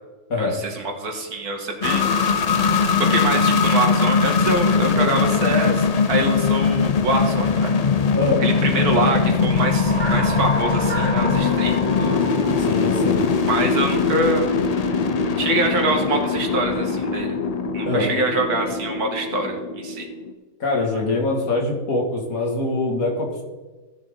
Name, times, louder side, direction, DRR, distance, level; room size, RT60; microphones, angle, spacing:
voice 1, 0.4-2.1 3.0-7.7 8.4-12.3 13.5-14.5 15.4-17.4 17.7-20.1, right 2 dB, 80° right, 3 dB, 2.2 m, -24 dB
sound 1, 1.8-20.3, left 5 dB, 85° left, 0.3 m, -21 dB
sound 2, 9.3-13.9, left 1 dB, 5° left, 1.8 m, -30 dB
voice 2, 12.6-13.2 17.8-18.1 20.6-23.4, left 2 dB, 65° left, -1 dB, 2.6 m, -23 dB
15.0 x 6.7 x 3.7 m, 1.3 s
omnidirectional pair, 1.6 m